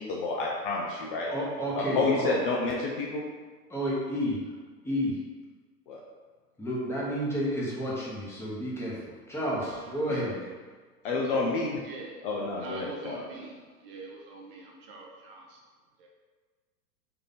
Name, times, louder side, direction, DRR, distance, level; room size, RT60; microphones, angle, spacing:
voice 1, 0.0-1.3 1.8-3.2 5.9-6.0 10.1-10.2 11.0-11.8 12.2-13.3, left 3 dB, 35° left, -2 dB, 0.4 m, -29 dB
voice 2, 1.3-2.3 3.7-4.4 4.8-5.1 6.6-10.5, equal, 5° left, -6 dB, 0.8 m, -31 dB
sound 1, 9.6-10.1, right 5 dB, 80° right, 0.9 m, -46 dB
voice 3, 11.8-12.2 12.6-15.6 16.0-16.1, right 3 dB, 35° right, -2 dB, 0.6 m, -44 dB
3.7 x 2.7 x 4.0 m, 1.4 s
hypercardioid pair, 110°, 48 cm